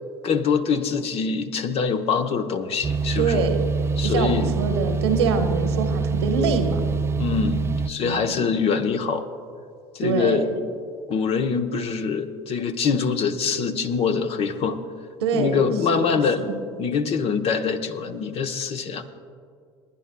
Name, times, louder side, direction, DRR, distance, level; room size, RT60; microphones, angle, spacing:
voice 1, 0.2-3.5 4.0-4.6 7.1-9.2 9.9-10.5 11.1-14.8 15.3-16.4 16.8-19.0, left 5 dB, 45° left, 7 dB, 1.0 m, -24 dB
sound 1, 2.8-7.9, right 4 dB, 20° right, 0.4 m, -25 dB
voice 2, 3.2-3.6 4.0-6.8 8.0-8.3 10.0-10.6 15.2-16.2, right 5 dB, 75° right, 5 dB, 1.2 m, -24 dB
29.5 x 10.0 x 2.3 m, 2.2 s
figure-of-eight pair, 70°, 14 cm